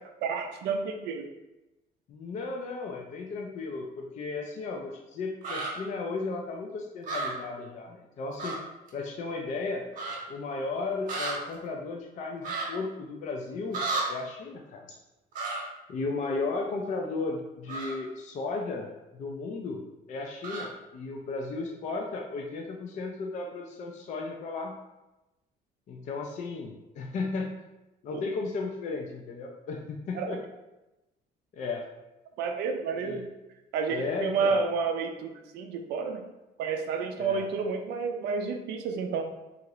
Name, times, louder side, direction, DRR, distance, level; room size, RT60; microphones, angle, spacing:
voice 1, 0.2-1.2 28.1-28.2 30.1-30.4 32.4-33.3 33.7-36.2 36.6-39.3, right 5 dB, 75° right, 5 dB, 0.4 m, -30 dB
voice 2, 2.1-8.6 8.9-9.8 10.3-15.0 15.9-18.9 19.1-19.8 20.1-24.8 25.9-27.5 28.0-30.4 31.5-31.9 33.0-33.2 33.9-34.6 37.2-37.4, left 3 dB, 45° left, 1 dB, 0.4 m, -35 dB
sound 1, 5.4-5.7 7.0-7.3 8.4-8.6 8.9-9.0 9.9-10.2 11.1-11.3 12.4-12.7 13.7-14.0 15.3-15.6 17.7-17.9 20.4-20.7, right 3 dB, 50° right, 0.9 m, -32 dB
2.7 x 2.4 x 2.9 m, 0.99 s
cardioid pair, 110°, 17 cm